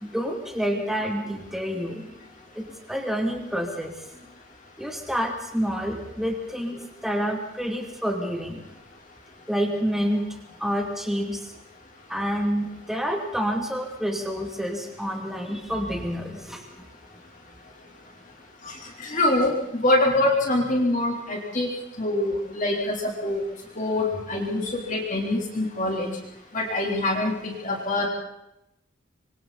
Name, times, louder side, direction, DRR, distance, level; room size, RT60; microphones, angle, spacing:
voice 1, 0.0-2.0 2.6-2.7 2.9-4.3 4.8-8.6 9.5-10.2 10.6-11.4 12.1-16.6, equal, ahead, 1 dB, 2.6 m, -28 dB
voice 2, 19.0-21.7 22.0-23.4 23.8-24.6 24.9-26.1 26.5-28.1, left 2 dB, 35° left, -1 dB, 3.6 m, -24 dB
27.0 x 23.5 x 4.2 m, 0.85 s
head